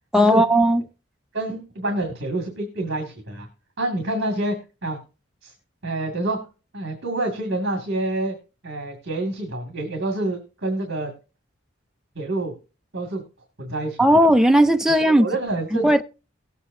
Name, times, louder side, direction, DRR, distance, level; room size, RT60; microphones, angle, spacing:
voice 1, 0.1-0.8 14.0-15.3 15.8-16.0, equal, 5° right, 0.4 m, -16 dB
voice 2, 1.3-3.5 3.8-4.6 4.8-5.0 5.4-5.5 5.8-6.4 6.7-8.4 8.6-11.1 12.2-12.5 12.9-13.2 13.6-14.0 15.1-16.0, right 2 dB, 60° right, 2.0 m, -27 dB
18.5 x 8.2 x 2.6 m
head